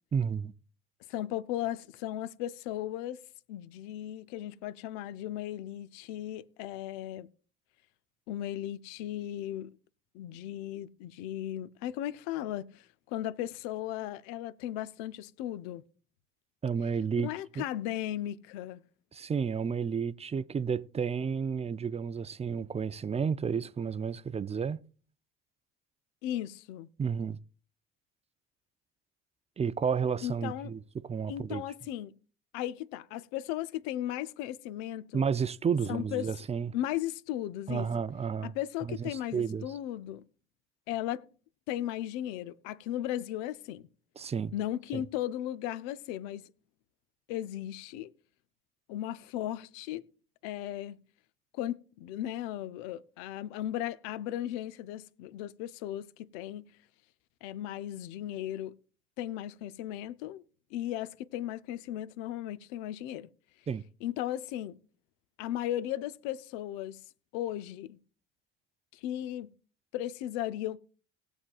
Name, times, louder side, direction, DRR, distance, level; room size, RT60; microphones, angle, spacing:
voice 1, 0.1-0.5 16.6-17.3 17.6-17.7 19.1-24.8 27.0-27.4 29.6-31.6 35.1-36.7 37.7-38.5 38.8-39.7 44.2-44.5 44.9-45.0 63.7-63.8, right 6 dB, 20° right, 0.4 m, -31 dB
voice 2, 1.1-3.2 3.5-7.3 8.3-9.8 10.1-15.8 17.2-18.8 26.2-26.9 30.2-30.7 31.3-32.1 32.5-35.2 35.9-36.3 36.7-37.9 38.4-40.2 40.9-41.2 41.7-43.9 44.5-46.5 47.3-48.1 48.9-50.0 50.4-51.0 51.5-56.7 57.4-58.8 59.2-60.4 60.7-63.3 64.0-64.8 65.4-67.0 67.3-68.0 68.9-69.5 69.9-70.8, left 12 dB, 70° left, 0.6 m, -36 dB
19.0 x 7.2 x 2.3 m
hypercardioid pair, 60°, 37 cm